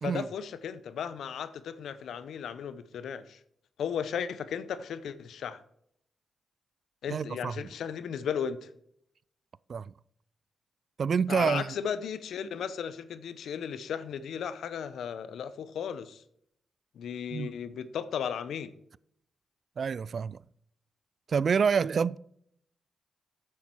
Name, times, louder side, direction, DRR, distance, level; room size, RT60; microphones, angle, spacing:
voice 1, 0.0-3.4 3.8-5.6 7.0-8.7 11.3-16.2 16.9-18.7, left 7 dB, 75° left, 0.7 m, -35 dB
voice 2, 7.1-7.5 9.7-9.9 11.0-11.8 17.3-17.5 19.8-20.4 21.3-22.2, right 6 dB, 60° right, 0.3 m, -27 dB
9.6 x 7.3 x 4.5 m
hypercardioid pair, 40°, 0 cm